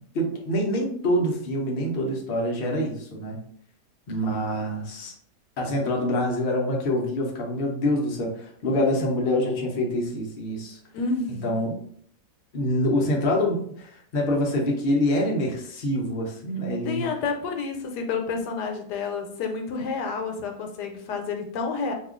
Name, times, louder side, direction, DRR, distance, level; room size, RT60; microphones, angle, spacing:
voice 1, 0.1-3.4 4.1-5.1 5.6-10.8 11.4-11.8 12.5-17.1, left 1 dB, 50° left, -1 dB, 0.6 m, -25 dB
voice 2, 10.9-11.5 16.8-21.9, left 4 dB, 80° left, 3 dB, 1.2 m, -29 dB
2.8 x 2.3 x 3.6 m, 0.64 s
omnidirectional pair, 1.8 m